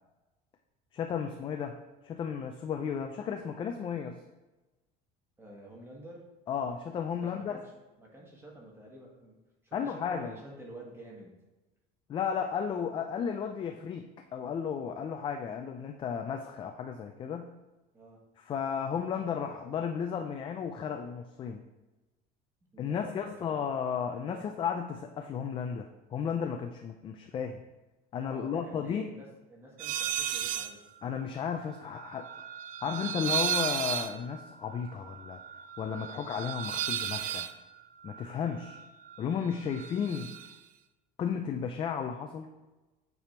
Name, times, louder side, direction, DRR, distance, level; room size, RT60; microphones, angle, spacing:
voice 1, 0.9-1.8 2.0-4.2 6.5-7.6 9.7-10.3 12.1-17.5 18.4-21.6 22.8-27.6 28.1-29.1 31.0-32.3 32.8-35.4 35.8-37.5 38.0-38.8 39.2-40.3 41.2-42.5, left 7 dB, 25° left, 5 dB, 0.4 m, -34 dB
voice 2, 5.4-6.2 7.2-7.7 8.0-9.4 9.6-11.3 17.9-18.2 22.7-23.6 24.2-24.5 28.3-30.8, right 1 dB, 15° right, -2 dB, 1.5 m, -49 dB
sound 1, 29.8-30.7 31.0-39.2 39.5-40.5, right 9 dB, 50° right, 0.4 m, -35 dB
8.4 x 3.5 x 4.4 m, 1.1 s
cardioid pair, 145°, 18 cm